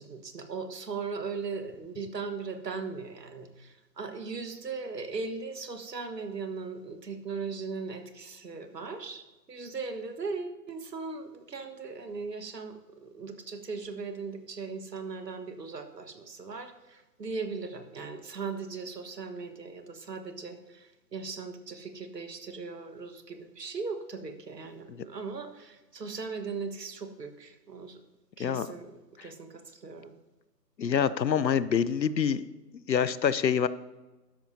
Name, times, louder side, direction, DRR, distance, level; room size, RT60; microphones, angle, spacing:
voice 1, 0.0-28.0 28.4-28.9 29.2-30.1, right 4 dB, 70° right, 7 dB, 1.6 m, -38 dB
voice 2, 30.8-32.5 32.7-33.7, left 7 dB, 85° left, 16 dB, 0.8 m, -26 dB
13.0 x 10.5 x 2.8 m, 1.1 s
hypercardioid pair, 170°, 50 cm